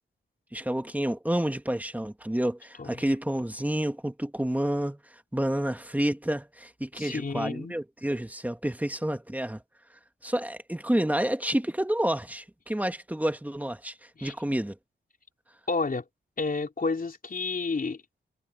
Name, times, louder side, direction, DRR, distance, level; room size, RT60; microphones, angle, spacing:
voice 1, 0.5-5.0 5.3-9.6 10.2-13.9 14.2-14.8, right 1 dB, 5° right, 2.0 m, -29 dB
voice 2, 6.9-7.8 14.2-14.3 15.7-16.0 16.4-18.0, left 4 dB, 45° left, 3.6 m, -30 dB
cardioid pair, 55°, 21 cm